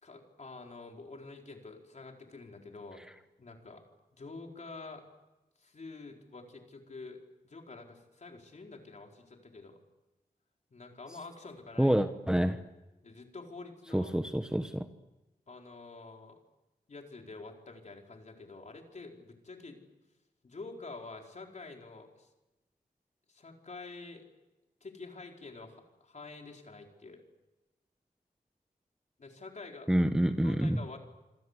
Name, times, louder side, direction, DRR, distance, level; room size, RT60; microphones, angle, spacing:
voice 1, 0.0-3.0 3.4-3.8 4.2-5.0 5.6-9.8 10.7-12.0 13.0-14.1 15.5-16.4 16.9-19.8 20.4-22.3 23.3-24.2 24.8-27.2 29.2-29.9 30.4-31.0, left 3 dB, 50° left, 2 dB, 4.5 m, -47 dB
voice 2, 11.8-12.6 13.9-14.9 29.9-30.8, equal, 5° right, 7 dB, 1.1 m, -27 dB
27.5 x 26.0 x 8.3 m, 1.1 s
wide cardioid pair, 130°, 16 cm